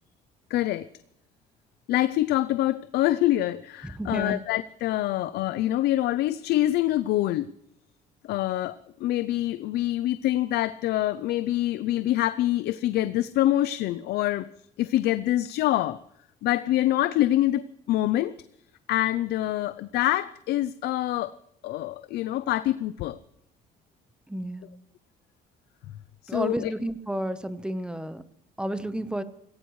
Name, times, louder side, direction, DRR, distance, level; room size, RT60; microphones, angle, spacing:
voice 1, 0.5-0.9 1.9-7.5 8.2-14.5 14.8-16.0 16.4-18.4 18.9-21.4 21.6-23.2 26.2-26.7, left 14 dB, 75° left, 14 dB, 0.5 m, -25 dB
voice 2, 4.0-4.4 24.3-24.7 26.3-28.2 28.6-29.2, right 1 dB, 5° right, 13 dB, 0.9 m, -31 dB
25.5 x 16.5 x 3.1 m, 0.77 s
cardioid pair, 110°, 17 cm